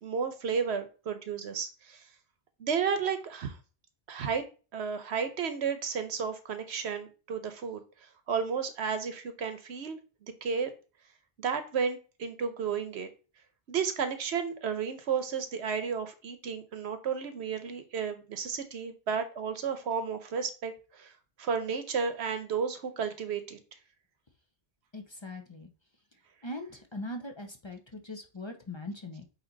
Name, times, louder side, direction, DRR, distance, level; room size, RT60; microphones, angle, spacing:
voice 1, 0.0-2.0 2.6-3.6 4.1-4.4 4.7-7.8 8.3-10.7 11.4-13.1 13.7-21.1 21.4-23.6, right 6 dB, 80° right, 9 dB, 1.1 m, -32 dB
voice 2, 24.9-25.7 26.4-29.2, left 1 dB, 30° left, 4 dB, 0.7 m, -41 dB
8.3 x 2.9 x 3.9 m, 0.35 s
omnidirectional pair, 1.1 m